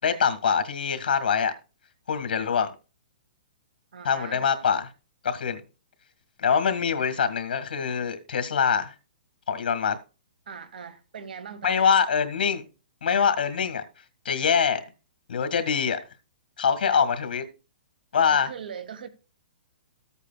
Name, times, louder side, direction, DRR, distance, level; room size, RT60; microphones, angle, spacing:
voice 1, 0.0-1.5 2.1-2.7 4.0-4.9 5.2-5.6 6.4-8.9 9.5-10.0 11.6-12.6 13.0-13.8 14.3-14.9 15.3-16.0 16.6-17.4 18.1-18.5, left 6 dB, 70° left, 1.9 m, -24 dB
voice 2, 3.9-4.4 10.5-11.9 18.3-19.1, right 7 dB, 70° right, 1.2 m, -40 dB
14.5 x 8.3 x 2.3 m
hypercardioid pair, 175°, 5 cm